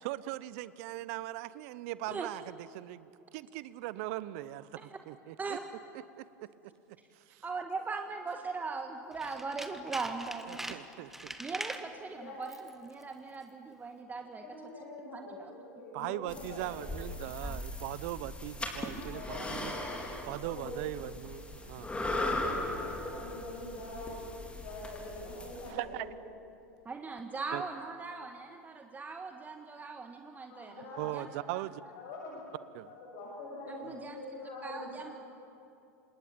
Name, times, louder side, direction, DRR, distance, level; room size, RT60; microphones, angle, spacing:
voice 1, 0.0-3.1 3.3-5.6 6.2-6.7 7.1-7.4 10.5-11.3 15.9-19.8 20.2-22.0 25.7-26.1 27.5-27.6 31.0-31.8 32.7-32.9 33.8-34.0, right 16 dB, 60° right, 17 dB, 0.8 m, -40 dB
voice 2, 7.4-10.7 11.4-14.4 15.1-15.5 17.4-17.6 19.3-19.6 21.9-22.1 26.8-30.8 31.1-31.6 33.7-34.2 34.6-35.1, right 4 dB, 20° right, 5 dB, 1.6 m, -40 dB
Tools, 9.1-11.9 12.4-12.7 13.0-13.1, right 1 dB, 5° right, 1.5 m, -42 dB
voice 3, 14.2-16.9 18.9-20.2 20.5-20.8 21.8-21.9 22.7-24.2 24.6-26.1 26.6-26.7 27.0-27.1 30.5-31.1 31.9-32.4 33.0-35.1, left 2 dB, 65° left, -5 dB, 7.7 m, -44 dB
sound 1, 16.3-25.7, left 2 dB, 15° left, 4.0 m, -38 dB
27.0 x 20.5 x 8.8 m, 2.7 s
hypercardioid pair, 90°, 9 cm